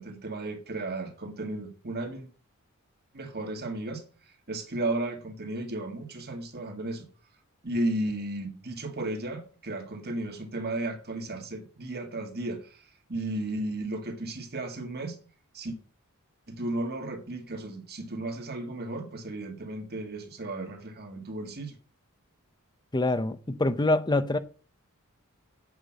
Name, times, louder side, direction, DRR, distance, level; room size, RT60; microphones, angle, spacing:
voice 1, 0.0-2.3 3.1-4.0 4.5-7.1 7.6-15.2 15.5-15.8 16.5-21.8, right 2 dB, 45° right, 2.0 m, -34 dB
voice 2, 22.9-24.4, left 2 dB, 20° left, 0.7 m, -25 dB
8.2 x 5.9 x 7.5 m
head